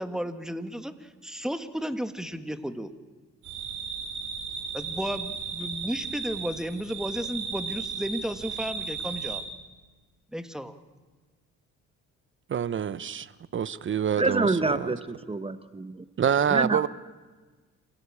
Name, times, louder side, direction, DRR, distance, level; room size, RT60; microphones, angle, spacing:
voice 1, 0.0-2.9 4.7-9.4 10.3-10.7, equal, ahead, 9 dB, 1.6 m, -33 dB
sound 1, 3.4-9.4, right 5 dB, 80° right, 5.9 m, -35 dB
voice 2, 12.5-14.9 16.2-16.9, right 8 dB, 40° right, 17 dB, 0.9 m, -27 dB
voice 3, 14.2-15.9 16.5-16.8, right 3 dB, 20° right, 11 dB, 1.1 m, -26 dB
27.0 x 17.0 x 8.5 m, 1.4 s
cardioid pair, 90°, 30 cm